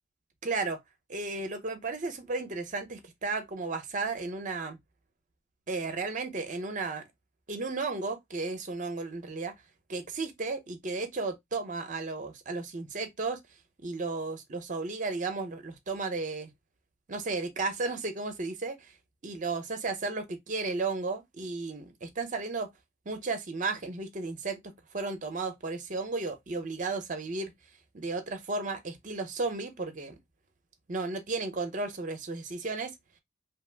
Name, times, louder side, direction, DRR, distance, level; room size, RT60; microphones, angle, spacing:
voice 1, 0.4-0.8 1.1-4.8 5.7-7.0 7.5-9.5 9.9-13.4 13.8-16.5 17.1-18.9 19.2-22.7 23.1-27.5 27.9-30.2 30.9-32.9, right 3 dB, 40° right, 0.7 m, -34 dB
2.9 x 2.0 x 3.2 m
head